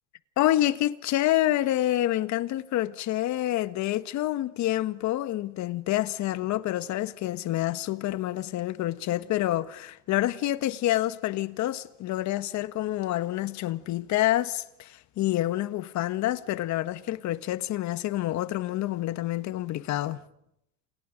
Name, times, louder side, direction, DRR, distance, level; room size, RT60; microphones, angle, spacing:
voice 1, 0.4-20.2, left 14 dB, 50° left, 1.5 m, -27 dB
30.0 x 28.5 x 5.2 m
supercardioid pair, 95°, 37 cm